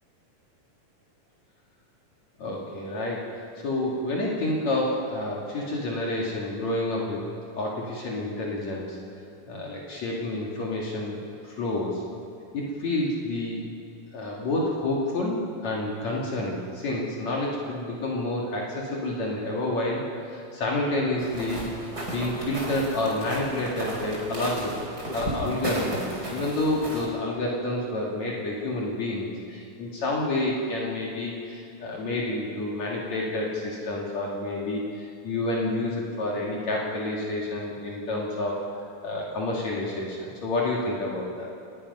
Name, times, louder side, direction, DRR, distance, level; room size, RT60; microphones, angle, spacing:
voice 1, 2.4-7.2 7.5-9.0 9.4-12.0 12.5-13.7 14.1-21.7 22.1-24.7 25.1-38.6 39.0-41.5, left 2 dB, 60° left, -4 dB, 3.4 m, -29 dB
sound 1, 21.2-27.1, right 1 dB, 30° right, 4.8 m, -34 dB
28.5 x 20.5 x 5.6 m, 2.5 s
omnidirectional pair, 3.7 m